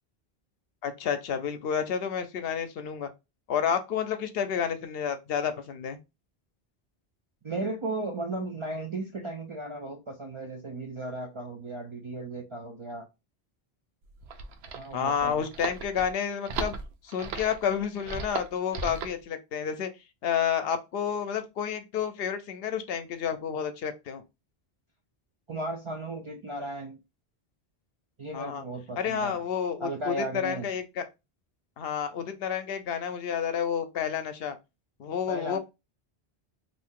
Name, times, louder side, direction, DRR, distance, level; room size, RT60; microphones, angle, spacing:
voice 1, 0.8-3.1 3.5-6.0 14.9-16.7 17.0-19.9 20.2-24.2 28.3-28.6 29.0-31.0 31.8-34.6 35.0-35.6, left 7 dB, 75° left, 0.8 m, -30 dB
voice 2, 7.4-13.1 14.7-15.4 25.5-27.0 28.2-29.4 29.8-30.7 35.3-35.6, right 2 dB, 45° right, 0.4 m, -35 dB
sound 1, 14.0-19.2, right 5 dB, 90° right, 0.8 m, -37 dB
2.6 x 2.6 x 3.6 m
omnidirectional pair, 1.0 m